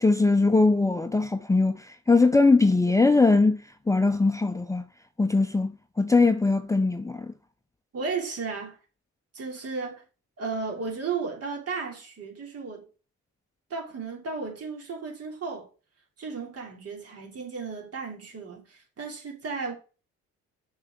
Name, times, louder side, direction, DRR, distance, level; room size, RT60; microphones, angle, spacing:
voice 1, 0.0-3.6 3.9-4.8 5.2-7.3, left 3 dB, 10° left, 0.6 m, -21 dB
voice 2, 7.9-8.8 9.3-10.0 10.4-12.8 13.7-15.7 16.2-19.7, right 4 dB, 50° right, 3.1 m, -34 dB
6.7 x 5.6 x 3.8 m
cardioid pair, 90°, 30 cm